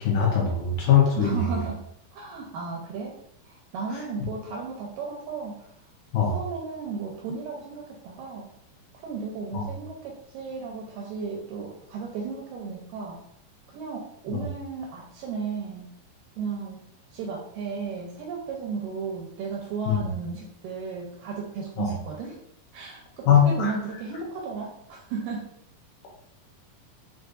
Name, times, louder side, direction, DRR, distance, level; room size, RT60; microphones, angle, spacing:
voice 1, 0.0-1.4 6.1-6.4 9.5-9.6 14.3-14.4 19.9-20.0 21.8-21.9 23.3-23.7, left 8 dB, 75° left, -3 dB, 2.1 m, -21 dB
voice 2, 1.2-1.8 2.1-3.2 3.5-5.7 6.3-8.5 8.9-13.2 13.7-15.9 16.4-16.8 17.1-22.4 22.7-25.5, right 5 dB, 85° right, -1 dB, 2.0 m, -34 dB
6.4 x 2.4 x 2.5 m, 0.72 s
omnidirectional pair, 4.3 m